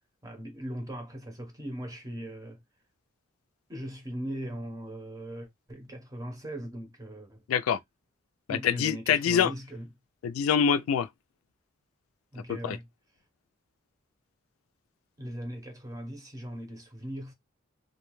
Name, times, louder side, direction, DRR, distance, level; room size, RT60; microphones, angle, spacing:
voice 1, 0.2-2.6 3.7-7.4 8.5-9.9 12.3-12.9 15.2-17.3, right 1 dB, 15° right, 0.7 m, -39 dB
voice 2, 7.5-7.8 8.5-9.5 10.2-11.1 12.5-12.8, left 7 dB, 90° left, 0.3 m, -25 dB
2.6 x 2.2 x 3.0 m
head